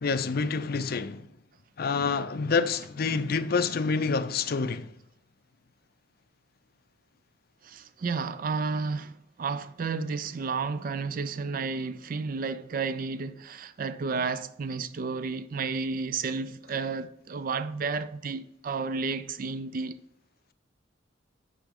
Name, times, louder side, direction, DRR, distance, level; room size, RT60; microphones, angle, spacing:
voice 1, 0.0-1.2 1.8-4.9, left 4 dB, 50° left, 0.5 m, -27 dB
voice 2, 7.6-20.0, right 4 dB, 45° right, 0.4 m, -32 dB
8.9 x 4.9 x 3.7 m
head